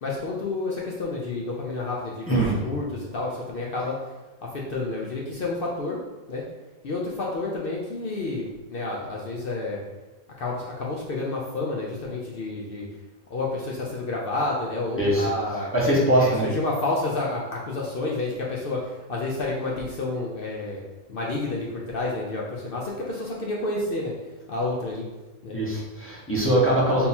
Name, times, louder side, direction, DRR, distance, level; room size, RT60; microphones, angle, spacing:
voice 1, 0.0-2.3 2.6-4.0 4.4-6.0 6.3-6.4 6.8-9.8 10.4-12.9 13.3-15.7 16.2-20.8 21.1-24.1 24.5-25.1 25.4-25.6, left 2 dB, 60° left, -3 dB, 0.6 m, -29 dB
voice 2, 2.3-2.7 15.0-16.5 25.5-27.1, right 1 dB, 10° left, -7 dB, 0.9 m, -22 dB
3.7 x 2.8 x 4.2 m, 1.2 s
omnidirectional pair, 1.4 m